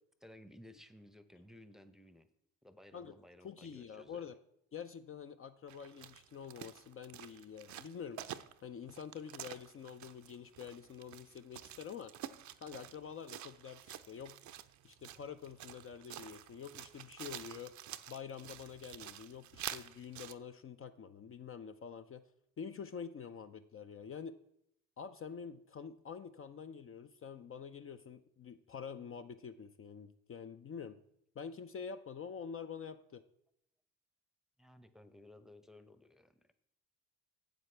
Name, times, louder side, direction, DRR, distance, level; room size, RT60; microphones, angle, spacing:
voice 1, 0.2-2.3 2.6-4.3 34.6-36.5, left 1 dB, ahead, 11 dB, 0.8 m, -57 dB
voice 2, 3.4-4.3 4.7-8.2 8.6-12.1 12.6-14.4 14.8-17.7 18.1-22.2 22.6-24.3 25.0-31.0 31.4-33.2, left 7 dB, 40° left, 8 dB, 0.6 m, -47 dB
sound 1, 5.7-20.3, right 11 dB, 55° right, 0.6 m, -49 dB
12.0 x 7.9 x 3.3 m, 0.73 s
hypercardioid pair, 55°, 35 cm